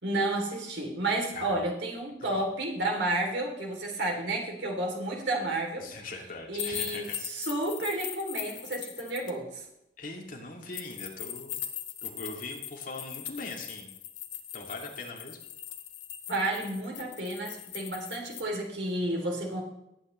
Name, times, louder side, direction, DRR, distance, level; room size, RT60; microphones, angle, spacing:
voice 1, 0.0-5.9 6.5-9.6 16.3-19.6, right 1 dB, 75° right, 0 dB, 3.1 m, -31 dB
voice 2, 5.8-7.2 10.0-11.6 12.0-13.9 14.5-15.4, left 2 dB, 50° left, 0 dB, 2.4 m, -41 dB
sound 1, 6.6-9.3 10.7-18.4, left 11 dB, 90° left, 1.4 m, -40 dB
18.0 x 9.0 x 3.2 m, 0.84 s
head